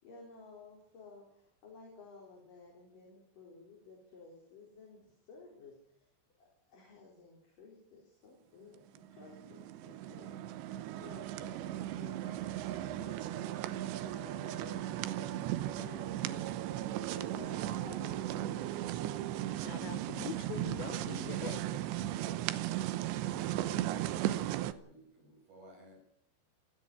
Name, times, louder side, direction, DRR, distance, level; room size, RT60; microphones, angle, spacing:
voice 1, 0.0-6.1 6.4-13.6 14.0-15.5 15.8-18.8, left 3 dB, 50° left, 5.8 m, -54 dB
sound 1, 9.0-24.7, right 13 dB, 85° right, 3.2 m, -36 dB
voice 2, 19.6-21.8, left 12 dB, 70° left, 2.7 m, -44 dB
voice 3, 23.2-26.0, equal, 60° right, 7.4 m, -57 dB
16.5 x 16.0 x 9.9 m
omnidirectional pair, 4.9 m